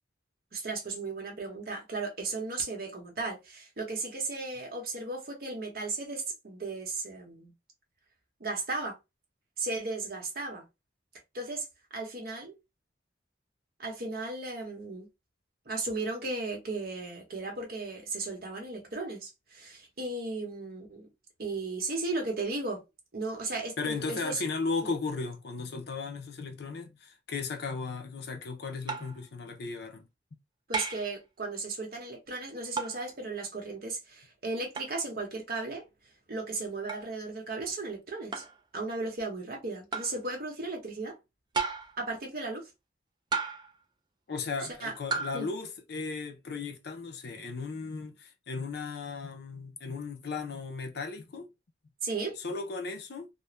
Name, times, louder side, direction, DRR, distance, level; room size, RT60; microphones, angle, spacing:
voice 1, 0.5-7.5 8.4-9.0 9.6-10.6 11.3-11.6 11.9-12.5 13.8-15.1 15.7-21.1 21.4-22.8 23.1-24.4 30.7-35.8 36.3-38.4 38.7-41.2 42.0-42.7 44.8-44.9 45.3-45.5 52.0-52.4, right 3 dB, 55° right, 0.9 m, -35 dB
voice 2, 23.8-30.1 44.3-51.5 52.4-53.3, left 4 dB, 60° left, 0.5 m, -36 dB
sound 1, 28.9-29.2 30.7-31.1 32.8-33.0 34.8-34.9 36.9-37.1 38.3-38.6 39.9-40.2 41.5-42.0 43.3-43.8 45.1-45.4, right 5 dB, 25° right, 0.3 m, -33 dB
2.4 x 2.1 x 3.0 m
head